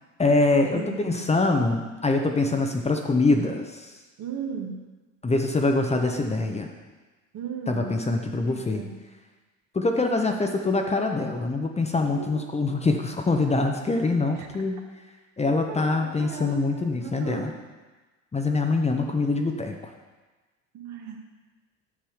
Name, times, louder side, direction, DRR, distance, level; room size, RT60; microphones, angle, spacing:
voice 1, 0.2-3.9 5.2-6.7 7.7-8.8 9.7-14.8 15.4-17.5 18.3-19.7, left 3 dB, 15° left, 3 dB, 1.1 m, -24 dB
voice 2, 0.7-1.3 4.2-4.8 7.3-8.0 8.4-9.0 12.1-12.8 14.4-14.5 15.7-17.5 20.7-21.2, right 6 dB, 45° right, 1 dB, 1.9 m, -37 dB
10.5 x 7.3 x 5.1 m, 1.3 s
hypercardioid pair, 70°, 40 cm